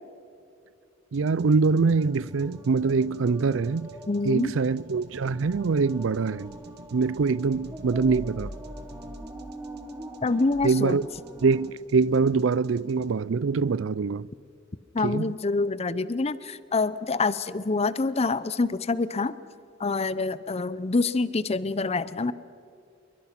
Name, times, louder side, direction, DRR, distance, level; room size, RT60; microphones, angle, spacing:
sound 1, 1.1-13.1, right 1 dB, 60° right, 1.4 m, -48 dB
voice 1, 1.1-3.9 4.2-6.5 6.9-8.5 10.6-11.1 11.4-14.3 15.0-15.3, right 4 dB, 80° right, 0.5 m, -24 dB
sound 2, 2.0-11.7, right 1 dB, 10° right, 1.5 m, -43 dB
voice 2, 4.1-4.5 10.2-11.0 14.9-19.3 19.8-22.3, left 3 dB, 35° left, 0.7 m, -26 dB
26.5 x 23.0 x 5.9 m
head